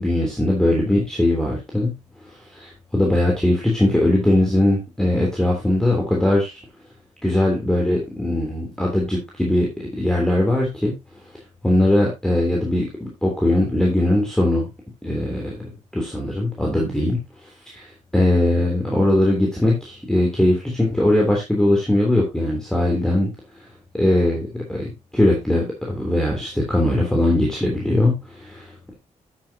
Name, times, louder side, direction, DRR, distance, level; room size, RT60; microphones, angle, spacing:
voice 1, 0.0-1.9 2.5-6.5 7.2-9.7 10.0-10.9 11.6-14.6 15.0-17.2 18.1-23.3 23.9-28.9, left 1 dB, 5° left, -1 dB, 3.3 m, -20 dB
9.3 x 8.5 x 2.9 m, 0.23 s
cardioid pair, 80°, 12 cm